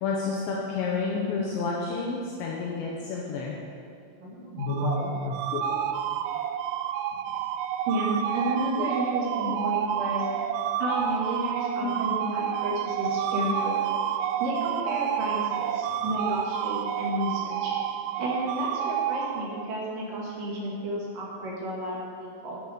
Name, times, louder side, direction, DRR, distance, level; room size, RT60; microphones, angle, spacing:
voice 1, 0.0-3.6 5.5-5.7 9.5-9.6 11.7-11.9, left 4 dB, 75° left, -3 dB, 3.0 m, -30 dB
voice 2, 4.2-5.4 6.1-6.2 7.9-10.3 10.8-13.8 14.4-17.8 18.2-22.6, right 1 dB, 50° right, -5 dB, 3.3 m, -31 dB
sound 1, 4.6-19.9, right 9 dB, 85° right, 2.8 m, -29 dB
13.0 x 8.4 x 5.2 m, 2.4 s
omnidirectional pair, 5.6 m